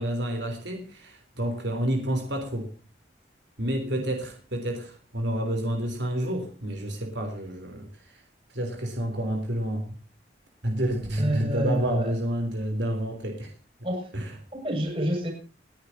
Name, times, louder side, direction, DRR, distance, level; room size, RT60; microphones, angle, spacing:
voice 1, 0.0-2.7 3.6-8.2 8.5-9.9 10.6-13.5 14.1-14.3, right 1 dB, 75° right, 3.6 m, -29 dB
voice 2, 11.2-12.1 13.8-14.1 14.5-15.3, equal, 30° right, 6.8 m, -28 dB
29.0 x 10.5 x 2.8 m
head